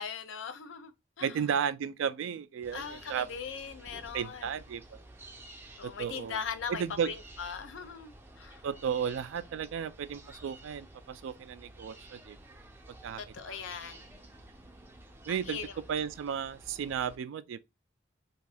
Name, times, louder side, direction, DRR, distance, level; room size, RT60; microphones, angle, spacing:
voice 1, 0.0-1.4 2.7-4.5 5.8-8.6 13.2-14.1 15.3-15.7, left 6 dB, 80° left, 0.4 m, -40 dB
voice 2, 1.2-3.3 4.1-5.0 5.8-6.4 6.7-7.1 8.6-12.4 13.0-13.6 15.3-15.6 15.9-17.7, right 7 dB, 85° right, 0.3 m, -34 dB
sound 1, 2.6-17.2, right 1 dB, 10° right, 0.4 m, -52 dB
2.5 x 2.3 x 3.3 m
head